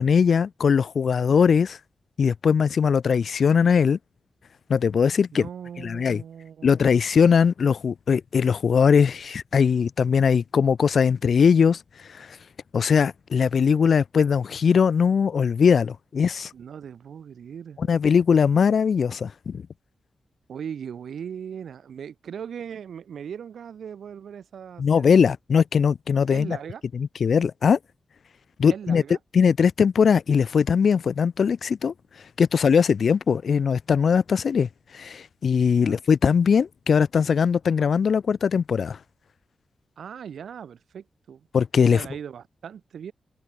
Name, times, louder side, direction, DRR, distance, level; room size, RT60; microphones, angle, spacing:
voice 1, 0.0-1.8 2.2-4.0 4.7-5.5 5.8-6.2 6.6-11.8 12.1-12.3 12.7-16.5 17.8-19.6 24.8-26.6 26.9-27.8 28.6-29.0 29.3-31.9 32.4-34.7 34.9-39.0 41.5-42.1, left 6 dB, 60° left, 1.5 m, -20 dB
voice 2, 5.3-6.8 16.5-17.9 20.5-25.1 26.3-26.8 28.7-29.2 35.8-36.0 40.0-41.5 41.9-43.1, right 8 dB, 85° right, 5.1 m, -39 dB
wide cardioid pair, 140°, 0 cm